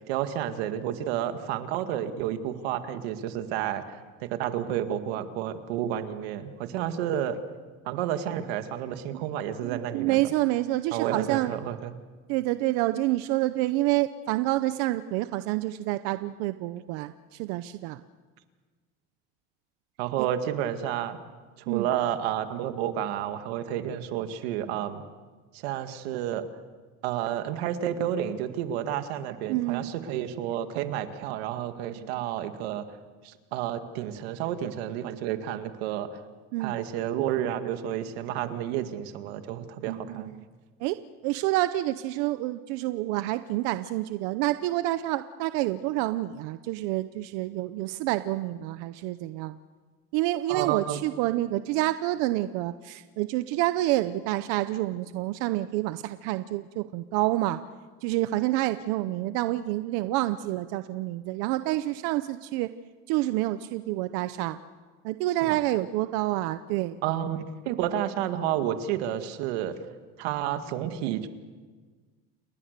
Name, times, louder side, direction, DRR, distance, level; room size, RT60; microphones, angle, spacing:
voice 1, 0.1-7.4 7.9-10.3 10.9-11.9 20.0-21.2 21.6-25.0 25.5-26.4 27.0-32.8 33.2-36.2 36.6-40.3 50.5-51.0 65.4-65.6 67.0-69.7 70.2-71.3, right 11 dB, 80° right, 8 dB, 2.0 m, -30 dB
voice 2, 9.6-11.5 12.3-18.0 20.2-20.3 21.7-21.9 29.5-29.9 31.9-32.1 36.5-36.8 39.8-40.4 40.8-41.0 41.2-49.6 50.1-57.6 58.0-62.7 63.1-64.6 65.0-67.0, right 16 dB, 55° right, 12 dB, 0.7 m, -28 dB
29.5 x 21.0 x 6.7 m, 1.4 s
cardioid pair, 175°, 31 cm